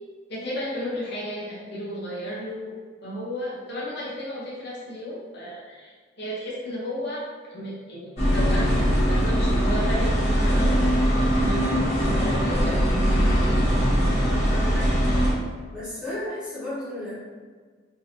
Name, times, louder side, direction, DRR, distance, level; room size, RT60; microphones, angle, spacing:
voice 1, 0.3-2.7 3.0-13.0, equal, 55° left, -6 dB, 0.9 m, -33 dB
sound 1, 8.2-15.3, equal, 30° left, 1.2 m, -21 dB
voice 2, 13.9-15.3 15.7-17.1, left 1 dB, 5° right, -11 dB, 1.3 m, -35 dB
3.7 x 2.8 x 2.8 m, 1.5 s
head